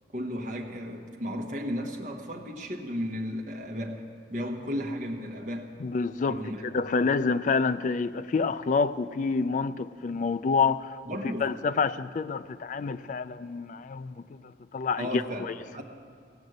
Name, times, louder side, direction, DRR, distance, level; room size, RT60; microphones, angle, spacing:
voice 1, 0.1-4.0 4.3-5.7 6.3-6.6 11.1-11.5 15.0-15.5 15.7-15.8, equal, 40° right, 1.2 m, -34 dB
voice 2, 5.8-10.9 11.4-15.5, left 4 dB, 40° left, 0.3 m, -28 dB
17.5 x 6.3 x 7.9 m
head